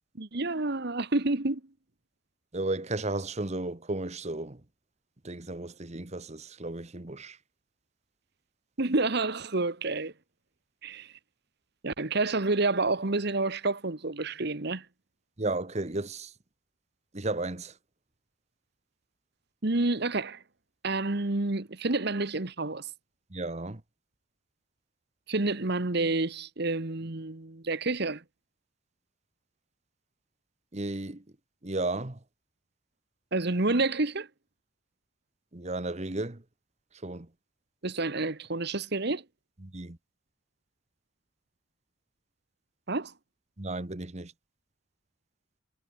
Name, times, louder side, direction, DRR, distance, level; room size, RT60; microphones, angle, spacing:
voice 1, 0.2-1.6 8.8-10.1 10.8-11.1 11.8-14.8 19.6-20.4 20.8-22.9 25.3-28.2 33.3-34.3 37.8-39.2 42.9-43.1, right 2 dB, 55° right, 1.4 m, -29 dB
voice 2, 2.5-4.6 5.2-7.4 15.4-16.3 17.1-17.7 23.3-23.8 30.7-31.2 31.6-32.2 35.5-36.4 37.0-37.3 39.6-40.0 43.6-44.3, right 2 dB, 35° right, 1.2 m, -34 dB
head